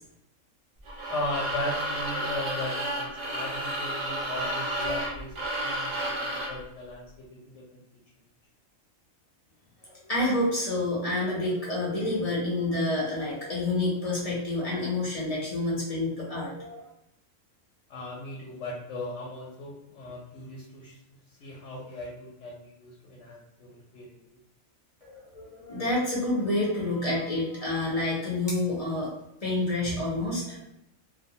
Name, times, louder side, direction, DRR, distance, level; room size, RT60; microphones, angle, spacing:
sound 1, 0.8-6.6, right 1 dB, 65° right, 0.4 m, -31 dB
voice 1, 1.1-7.8 17.9-21.0 21.4-24.1, left 1 dB, 70° left, -3 dB, 0.8 m, -37 dB
voice 2, 9.8-16.9 25.0-29.1 29.4-30.6, left 2 dB, 45° left, -6 dB, 0.4 m, -28 dB
2.4 x 2.0 x 2.6 m, 0.81 s
omnidirectional pair, 1.4 m